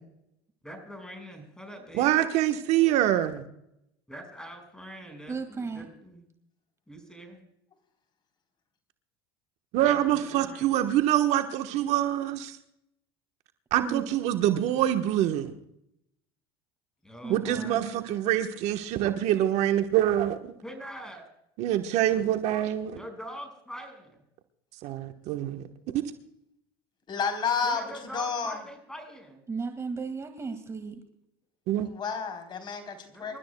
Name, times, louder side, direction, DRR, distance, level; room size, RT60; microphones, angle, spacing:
voice 1, 0.6-2.1 4.1-6.2 6.9-7.4 9.7-10.7 17.0-17.8 20.6-21.3 22.9-24.2 27.6-29.4 33.1-33.4, equal, 5° left, 5 dB, 5.6 m, -43 dB
voice 2, 2.0-3.4 9.7-12.6 13.7-15.5 17.3-20.5 21.6-23.0 24.8-25.7 25.9-26.0 31.7-31.9, right 12 dB, 60° right, 6 dB, 1.3 m, -25 dB
voice 3, 5.3-5.9 13.8-14.1 17.2-18.0 29.5-31.0, right 4 dB, 20° right, 6 dB, 2.0 m, -35 dB
voice 4, 27.1-28.6 31.8-33.4, left 5 dB, 35° left, 6 dB, 3.8 m, -31 dB
27.5 x 13.0 x 2.3 m, 0.78 s
hypercardioid pair, 90°, 13 cm